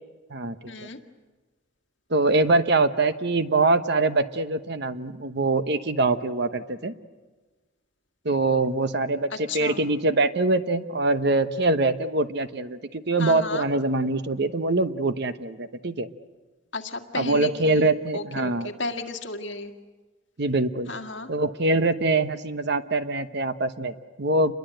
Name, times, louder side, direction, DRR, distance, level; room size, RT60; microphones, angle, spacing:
voice 1, 0.7-1.0 9.5-9.8 13.2-13.6 16.7-19.7 20.9-21.3, left 3 dB, 65° left, 5 dB, 1.9 m, -34 dB
voice 2, 2.1-6.9 8.2-16.1 17.1-18.7 20.4-20.9 21.3-24.5, right 2 dB, 55° right, 11 dB, 1.0 m, -24 dB
28.5 x 22.0 x 7.9 m, 1.3 s
head